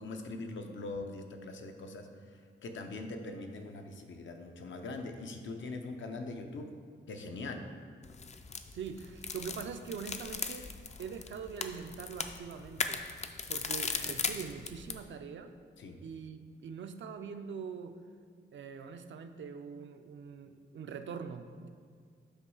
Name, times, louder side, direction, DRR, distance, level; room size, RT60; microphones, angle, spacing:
voice 1, 0.0-2.1 2.6-6.7 7.1-7.6 15.8-16.0, left 2 dB, 75° left, 5 dB, 0.7 m, -42 dB
sound 1, 8.0-15.0, left 5 dB, 35° left, 0.4 m, -38 dB
voice 2, 8.7-10.7 11.0-13.1 13.5-15.5 16.0-18.0 18.5-21.7, right 6 dB, 70° right, 7 dB, 0.5 m, -43 dB
8.0 x 3.1 x 6.2 m, 2.1 s
wide cardioid pair, 125°, 20 cm